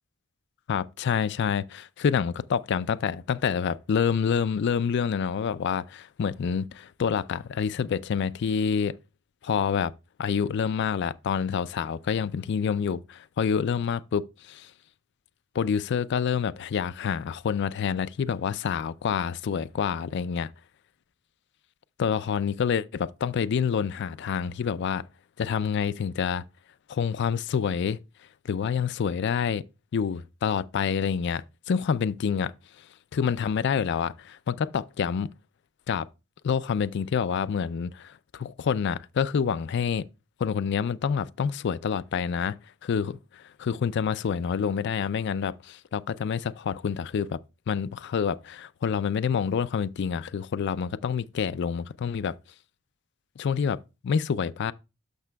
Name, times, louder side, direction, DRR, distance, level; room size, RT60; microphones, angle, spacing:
voice 1, 0.7-9.0 9.4-9.9 10.2-14.7 15.5-20.5 22.0-25.0 25.4-26.4 26.9-28.0 28.5-29.6 29.9-32.5 33.1-35.3 35.9-36.1 36.4-40.1 40.4-42.6 42.8-47.4 47.7-52.3 53.4-53.8 54.0-54.7, left 6 dB, 55° left, 0.4 m, -27 dB
12.0 x 5.9 x 2.2 m
head